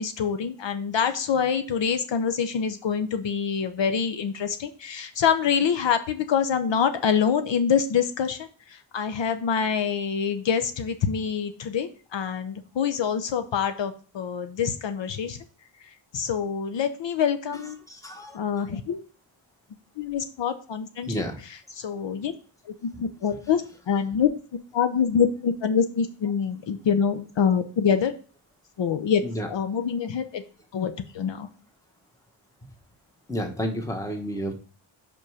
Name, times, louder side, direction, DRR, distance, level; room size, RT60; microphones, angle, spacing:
voice 1, 0.0-15.4 16.1-17.8 18.3-19.0 20.0-21.1 21.8-22.3 22.7-24.3 24.7-28.1 28.8-29.2 29.5-30.4 30.7-31.5, left 7 dB, 65° left, 9 dB, 0.7 m, -25 dB
voice 2, 17.9-18.8 21.0-21.4 29.2-29.5 33.3-34.5, equal, 5° left, 3 dB, 1.1 m, -31 dB
5.4 x 5.4 x 4.8 m, 0.39 s
wide cardioid pair, 155°, 46 cm